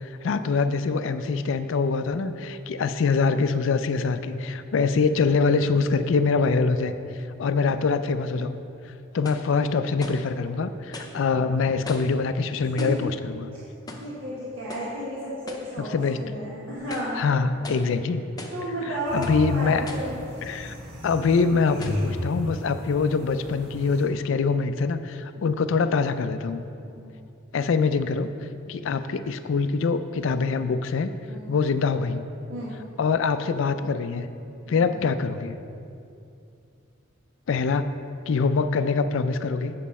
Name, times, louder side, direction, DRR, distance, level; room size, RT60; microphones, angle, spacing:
voice 1, 0.0-6.9 7.4-8.6 9.1-13.5 15.8-16.2 17.2-18.2 18.9-19.8 20.4-20.7 21.0-26.6 27.5-28.3 28.7-31.1 31.5-32.3 33.0-34.3 34.7-35.6 37.5-37.9 38.3-39.7, left 4 dB, 70° left, 11 dB, 0.4 m, -24 dB
sound 1, 9.2-9.5 10.0-10.3 10.9-11.2 11.9-12.2 12.8-13.1 13.9-14.2 14.7-15.0 15.5-15.7 16.2-16.3 16.8-17.2 17.6-17.9 18.4-18.7 19.2-19.5 19.9-20.2 20.9-21.0 21.8-22.1, left 2 dB, 20° left, 0.6 m, -39 dB
voice 2, 12.8-13.1 13.5-13.6 14.0-17.2 18.5-20.3 25.3-25.5 26.8-27.1 31.3-31.5 32.5-32.8 34.7-34.8, equal, 75° right, -8 dB, 1.4 m, -33 dB
sound 2, 19.1-24.0, left 1 dB, 60° right, 1.6 m, -34 dB
7.5 x 7.1 x 4.2 m, 2.6 s
head